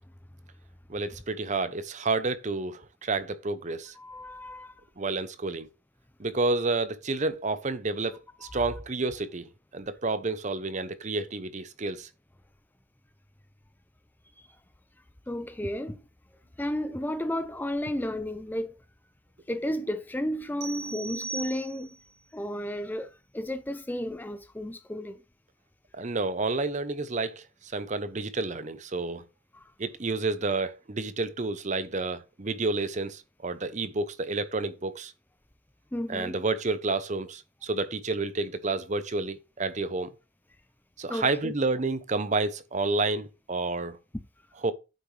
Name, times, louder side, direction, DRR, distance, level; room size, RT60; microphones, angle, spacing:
voice 1, 0.9-3.9 5.0-5.7 6.2-12.1 25.9-29.2 29.8-35.1 36.1-40.1 41.0-44.0 44.6-44.7, right 3 dB, 35° right, 0.7 m, -30 dB
voice 2, 4.0-4.7 8.4-8.7 14.4-14.5 15.3-16.0 16.6-18.8 19.5-21.9 22.3-25.2 29.5-29.7 35.9-36.4 41.1-41.5, left 1 dB, 10° left, 0.4 m, -33 dB
sound 1, 20.6-22.1, right 3 dB, 90° right, 1.7 m, -38 dB
9.3 x 7.5 x 3.3 m
head